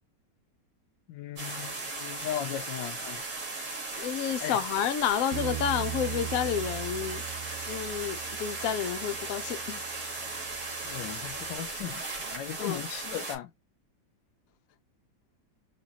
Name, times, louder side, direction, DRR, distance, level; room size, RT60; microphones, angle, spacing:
voice 1, 1.1-3.2 4.4-4.6 10.8-13.5, left 11 dB, 85° left, 1.3 m, -37 dB
sound 1, 1.4-13.4, right 3 dB, 50° right, 1.9 m, -37 dB
voice 2, 4.0-7.2 7.7-9.8 12.6-12.8, left 9 dB, 65° left, 0.9 m, -30 dB
Bass guitar, 5.3-11.6, right 12 dB, 70° right, 1.0 m, -40 dB
4.3 x 2.9 x 2.8 m
omnidirectional pair, 1.9 m